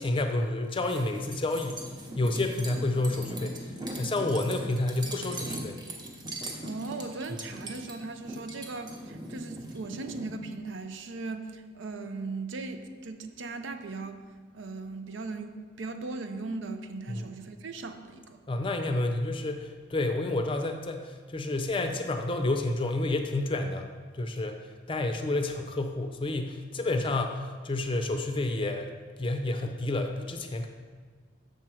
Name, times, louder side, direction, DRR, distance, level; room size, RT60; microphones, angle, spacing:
voice 1, 0.0-1.8 2.2-3.7 4.0-5.8 17.1-17.3 18.5-23.9 24.1-24.6 24.9-28.9 29.2-30.7, left 2 dB, 25° left, 5 dB, 0.5 m, -29 dB
sound 1, 0.8-10.3, right 1 dB, 20° right, 0.8 m, -40 dB
voice 2, 6.6-14.2 14.5-18.4, right 3 dB, 75° right, 7 dB, 0.6 m, -38 dB
6.8 x 4.4 x 6.2 m, 1.5 s
head